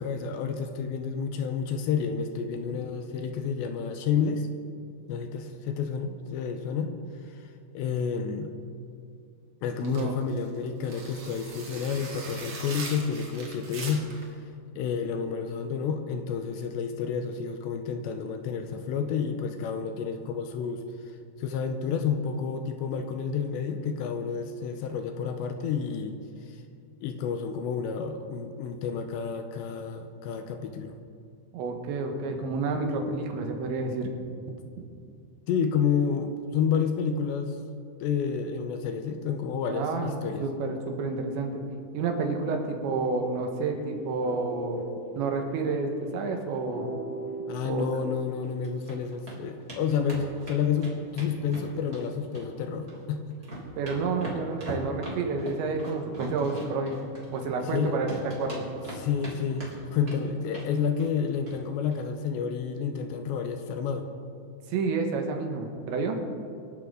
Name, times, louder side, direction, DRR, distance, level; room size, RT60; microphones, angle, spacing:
voice 1, 0.0-4.5 5.1-6.9 7.2-8.5 9.6-14.1 14.8-26.1 26.5-26.6 27.0-30.9 35.5-37.6 38.0-40.5 47.5-53.4 57.7-58.0 59.0-64.1, left 6 dB, 80° left, 6 dB, 2.9 m, -30 dB
sound 1, 9.8-14.3, right 3 dB, 60° right, 1.3 m, -41 dB
voice 2, 9.8-10.1 31.5-34.1 39.7-41.6 41.9-44.8 45.2-46.9 47.6-47.8 53.8-56.9 57.3-58.7 64.7-66.2, right 4 dB, 75° right, 3 dB, 3.5 m, -30 dB
sound 2, 42.9-48.4, right 2 dB, 40° right, 4.7 m, -39 dB
sound 3, 48.4-49.0 49.3-49.4 49.7-49.8 50.1-52.0 52.3-53.0 53.3-57.8 58.1-59.3 59.6-60.2 60.5-60.7 61.0-61.2 61.5-61.6 61.9-62.0, right 1 dB, 20° right, 3.0 m, -40 dB
25.0 x 11.5 x 3.9 m, 2.4 s
omnidirectional pair, 5.4 m